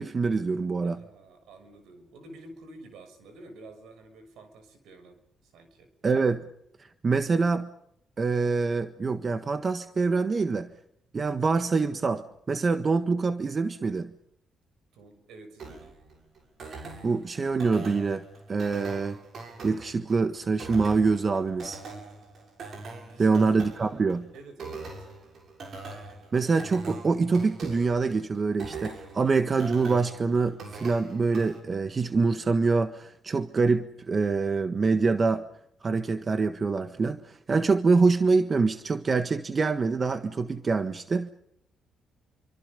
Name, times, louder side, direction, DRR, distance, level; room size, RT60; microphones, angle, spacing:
voice 1, 0.0-1.0 6.0-6.4 7.0-7.7 8.2-10.7 11.1-14.1 16.7-19.2 19.6-21.8 23.2-24.3 26.3-35.5 35.8-41.3, right 4 dB, 40° right, 1.5 m, -25 dB
voice 2, 0.8-5.9 14.9-16.0 22.9-23.3 23.7-25.1, right 2 dB, 75° right, 6.3 m, -50 dB
sound 1, 15.6-31.6, right 3 dB, 60° right, 7.0 m, -42 dB
28.0 x 24.5 x 5.4 m
supercardioid pair, 60°, 0 cm